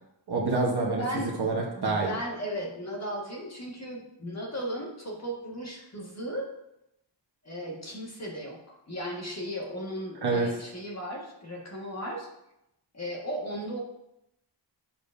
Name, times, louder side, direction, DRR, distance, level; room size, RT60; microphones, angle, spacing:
voice 1, 0.3-2.1 10.2-10.5, right 3 dB, 60° right, -2 dB, 1.1 m, -27 dB
voice 2, 1.0-1.3 1.7-6.5 7.4-12.3 12.9-13.8, equal, 35° left, -2 dB, 1.6 m, -36 dB
8.7 x 6.8 x 2.6 m, 0.84 s
wide cardioid pair, 110°, 44 cm